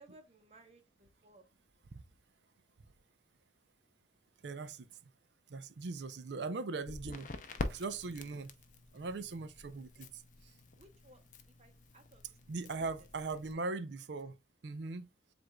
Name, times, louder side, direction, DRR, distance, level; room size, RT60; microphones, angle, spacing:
voice 1, 0.0-1.5 9.7-10.1 10.8-13.7, right 2 dB, 35° right, 0.9 m, -62 dB
voice 2, 4.4-5.0 5.5-7.3 7.6-8.5 8.9-10.5 12.5-14.4 14.6-15.1, right 3 dB, 65° right, 0.5 m, -40 dB
Crackle, 6.8-13.5, left 2 dB, 40° left, 0.5 m, -46 dB
7.6 x 2.6 x 2.2 m
head